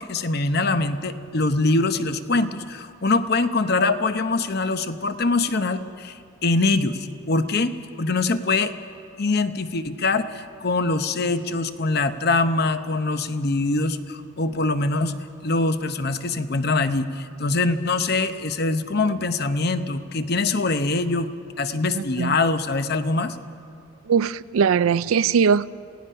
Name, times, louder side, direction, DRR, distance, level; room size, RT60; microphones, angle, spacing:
voice 1, 0.0-7.7 8.0-8.7 9.2-15.2 15.4-21.3 21.6-23.4, left 3 dB, 50° left, 10 dB, 0.8 m, -23 dB
voice 2, 22.0-22.4 24.1-25.7, right 6 dB, 90° right, 18 dB, 0.4 m, -20 dB
27.0 x 17.0 x 5.6 m, 2.4 s
head